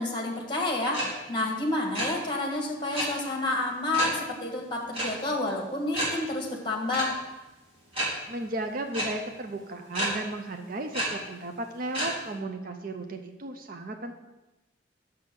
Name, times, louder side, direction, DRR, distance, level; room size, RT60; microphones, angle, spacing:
voice 1, 0.0-7.2, left 2 dB, 25° left, 1 dB, 1.6 m, -29 dB
sound 1, 0.9-1.0 1.3-1.5 1.8-2.1 2.9-3.0 3.9-4.1 4.9-5.0 5.4-5.5 5.9-6.1 6.9-7.0 7.9-8.0 8.9-9.0 9.9-10.1 10.9-11.0 11.9-12.1, right 1 dB, 30° right, 3.1 m, -29 dB
voice 2, 8.3-14.2, right 2 dB, 50° right, 5 dB, 0.6 m, -35 dB
6.8 x 5.4 x 6.7 m, 1.0 s
head